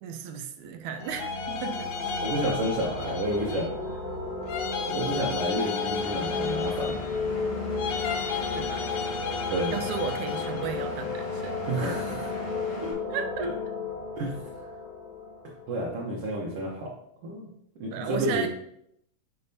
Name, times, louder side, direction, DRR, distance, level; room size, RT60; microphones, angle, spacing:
voice 1, 0.0-1.9 8.5-8.9 9.7-11.6 13.1-13.5 17.9-18.5, right 7 dB, 80° right, 6 dB, 2.0 m, -34 dB
sound 1, 0.8-16.4, left 3 dB, 75° left, 2.7 m, -34 dB
sound 2, 1.0-3.8 4.5-7.3 7.7-10.7, left 7 dB, 90° left, 1.2 m, -34 dB
voice 2, 2.2-3.9 4.9-7.0 9.5-9.7 11.6-12.3 12.8-13.0 13.4-13.5 14.2-14.4 15.7-16.9 17.2-17.5 17.8-18.5, right 1 dB, 60° right, -3 dB, 1.7 m, -30 dB
Engine, 6.0-12.9, left 2 dB, 55° left, 2.3 m, -41 dB
8.6 x 5.6 x 2.7 m, 0.75 s
omnidirectional pair, 3.4 m